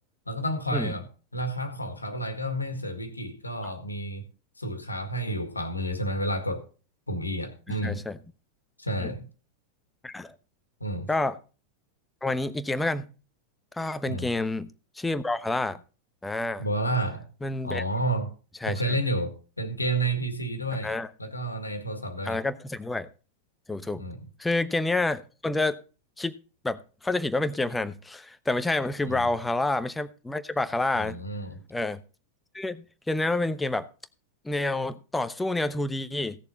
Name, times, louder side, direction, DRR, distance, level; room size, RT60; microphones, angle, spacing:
voice 1, 0.3-1.1 1.3-4.2 4.6-6.6 7.1-8.0 8.8-9.3 10.8-11.1 14.1-14.3 16.6-17.3 17.6-18.3 18.7-22.4 23.9-24.2 29.0-29.3 30.9-31.6, right 1 dB, 80° left, 1.8 m, -30 dB
voice 2, 7.7-8.2 9.0-9.1 10.0-10.3 11.1-11.4 12.2-13.1 13.7-14.7 15.0-15.8 16.2-16.7 17.4-17.8 18.6-18.9 20.8-21.1 22.2-23.1 23.7-24.0 24.4-25.8 26.2-26.4 26.6-31.2 31.7-32.0 32.5-33.9 34.4-36.4, left 2 dB, 10° left, 0.9 m, -28 dB
16.5 x 6.9 x 4.1 m
figure-of-eight pair, 90°, 0 cm